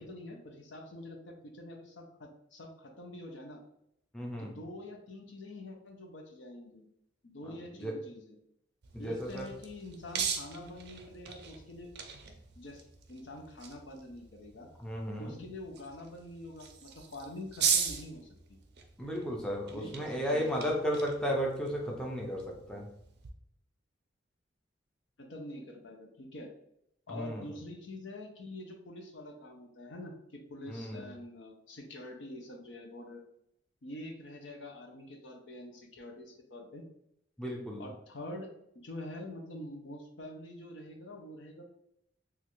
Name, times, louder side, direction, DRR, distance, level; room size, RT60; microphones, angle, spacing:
voice 1, 0.0-3.6 4.4-6.9 7.2-8.4 9.0-11.9 12.6-12.8 13.1-14.7 15.2-18.3 19.7-20.7 25.2-26.5 27.1-33.2 33.8-36.9 37.8-41.6, left 1 dB, 70° left, 2 dB, 0.6 m, -46 dB
voice 2, 4.1-4.6 7.4-7.9 8.9-9.5 14.8-15.4 19.0-22.4 22.7-22.9 27.1-27.6 30.7-31.1 37.4-37.8, equal, 5° left, -2 dB, 0.4 m, -34 dB
sound 1, 8.8-23.3, right 7 dB, 55° right, 0.4 m, -39 dB
3.1 x 2.4 x 2.9 m, 0.76 s
head